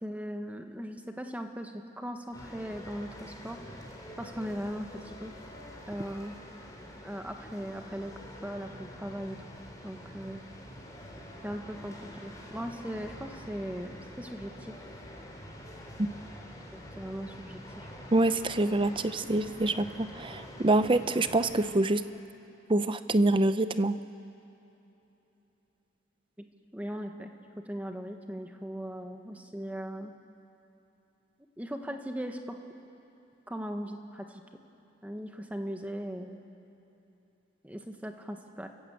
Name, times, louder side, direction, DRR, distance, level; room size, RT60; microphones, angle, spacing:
voice 1, 0.0-3.6 4.2-5.3 5.9-6.4 7.0-8.1 8.4-9.4 9.8-10.4 11.4-14.7 16.7-17.9 26.4-26.5 26.7-27.3 27.7-30.1 31.6-32.6 33.5-34.4 35.0-36.4 37.6-38.7, equal, 10° right, 5 dB, 1.4 m, -38 dB
sound 1, 2.3-21.8, equal, 20° left, 3.2 m, -46 dB
voice 2, 18.1-22.0 22.7-24.0, right 2 dB, 25° right, 12 dB, 0.6 m, -26 dB
30.0 x 15.0 x 8.3 m, 3.0 s
head